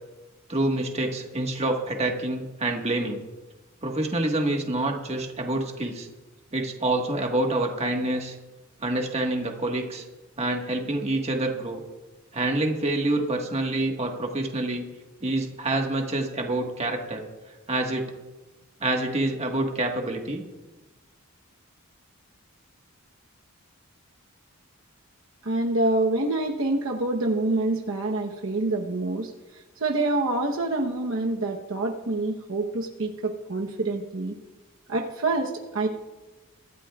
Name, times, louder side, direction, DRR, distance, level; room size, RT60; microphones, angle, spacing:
voice 1, 0.5-3.2 3.8-6.1 6.5-8.4 8.8-10.0 10.4-11.8 12.3-14.8 15.2-17.2 17.7-18.0 18.8-20.4, right 2 dB, 30° right, 2 dB, 1.5 m, -27 dB
voice 2, 25.4-29.3 29.8-34.3 34.9-35.9, right 2 dB, 65° right, 1 dB, 1.0 m, -26 dB
23.0 x 13.0 x 2.4 m, 1.1 s
head